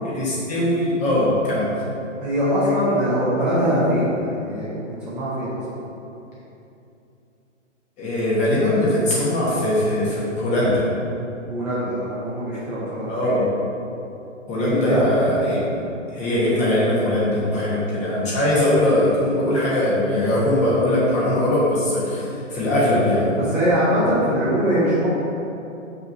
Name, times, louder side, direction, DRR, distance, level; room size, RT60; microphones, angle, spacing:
voice 1, 0.0-1.7 8.0-10.8 13.1-13.5 14.5-23.3, left 1 dB, 20° left, -7 dB, 1.2 m, -21 dB
voice 2, 2.2-5.8 11.5-13.3 14.5-15.1 23.3-25.1, equal, 5° right, -13 dB, 0.5 m, -22 dB
5.6 x 3.8 x 5.8 m, 2.8 s
figure-of-eight pair, 130°, 38 cm